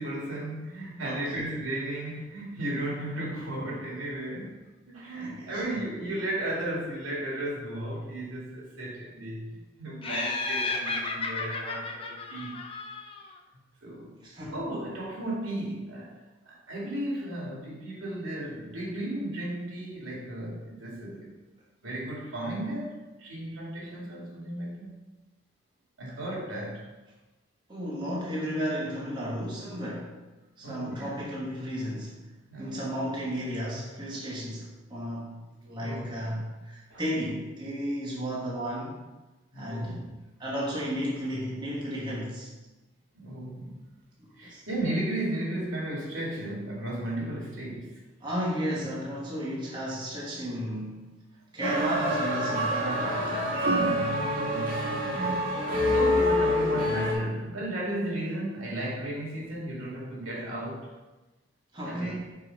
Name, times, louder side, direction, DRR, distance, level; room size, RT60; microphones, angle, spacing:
voice 1, 0.0-4.6 4.9-12.6 13.8-14.1 14.5-16.2 16.5-21.3 21.8-24.9 26.0-26.9 30.6-31.2 32.5-32.8 35.8-36.3 36.9-37.0 39.5-40.1 43.1-43.8 44.4-48.0 53.6-60.9 61.8-62.2, right 1 dB, 80° right, -4 dB, 2.2 m, -34 dB
voice 2, 1.0-1.5 5.1-5.6 14.2-14.6 27.7-30.1 30.6-32.2 32.6-39.0 39.5-40.0 40.4-42.5 44.4-44.6 48.2-51.1 51.5-53.7 61.7-62.2, equal, 20° right, -6 dB, 1.2 m, -33 dB
Laughter, 10.0-13.3, left 3 dB, 25° left, 0.5 m, -33 dB
sound 1, 51.6-57.1, equal, 45° right, 1.4 m, -26 dB
4.8 x 4.8 x 5.2 m, 1.1 s
head